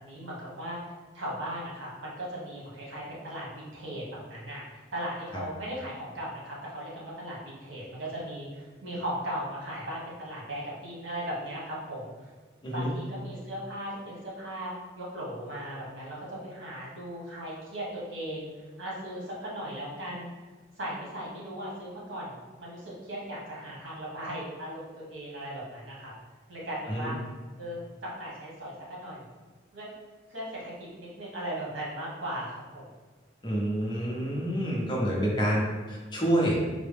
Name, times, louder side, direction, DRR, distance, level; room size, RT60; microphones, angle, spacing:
voice 1, 0.0-12.3 12.7-18.5 18.8-20.3 20.8-26.1 26.5-27.2 27.6-29.3 29.7-29.9 30.3-32.9, equal, 90° right, -5 dB, 1.2 m, -38 dB
voice 2, 33.4-36.7, right 1 dB, 25° left, -4 dB, 0.6 m, -28 dB
3.9 x 2.2 x 3.4 m, 1.4 s
head